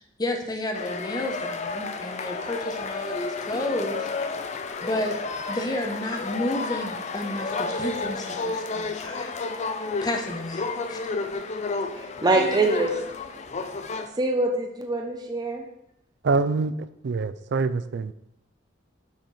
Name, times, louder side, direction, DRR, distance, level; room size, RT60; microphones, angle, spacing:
voice 1, 0.0-4.1 4.8-5.2 5.5-9.3 10.0-10.6 10.9-11.0, left 1 dB, 20° left, 3 dB, 0.8 m, -31 dB
sound 1, 0.7-14.1, left 3 dB, 35° left, 0.5 m, -31 dB
voice 2, 12.0-13.0 14.2-15.7, right 2 dB, 20° right, 3 dB, 0.6 m, -24 dB
voice 3, 16.2-18.1, right 4 dB, 60° right, 13 dB, 0.4 m, -25 dB
6.3 x 4.3 x 4.8 m, 0.80 s
head